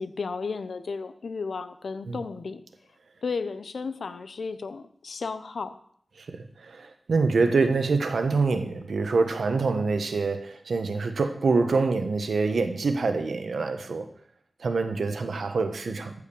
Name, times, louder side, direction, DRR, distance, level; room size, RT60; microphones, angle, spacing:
voice 1, 0.0-2.6 3.2-5.7, left 4 dB, 80° left, 11 dB, 0.8 m, -33 dB
voice 2, 6.2-14.1 14.6-16.1, right 4 dB, 85° right, 7 dB, 1.2 m, -25 dB
14.0 x 5.1 x 7.0 m, 0.64 s
wide cardioid pair, 75°, 0 cm